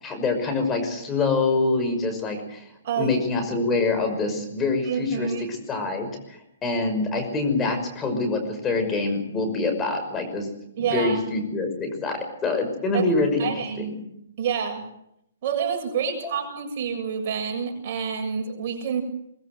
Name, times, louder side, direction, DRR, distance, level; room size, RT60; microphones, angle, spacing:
voice 1, 0.0-2.7 3.0-10.5 10.8-14.0 16.2-16.3, left 3 dB, 15° left, 6 dB, 5.8 m, -25 dB
voice 2, 2.8-3.2 4.8-5.5 10.8-11.2 12.9-13.1 13.4-13.9 14.4-14.9 15.4-19.0, right 7 dB, 50° right, 4 dB, 7.4 m, -28 dB
23.0 x 21.5 x 8.0 m, 0.78 s
hypercardioid pair, 140°, 0 cm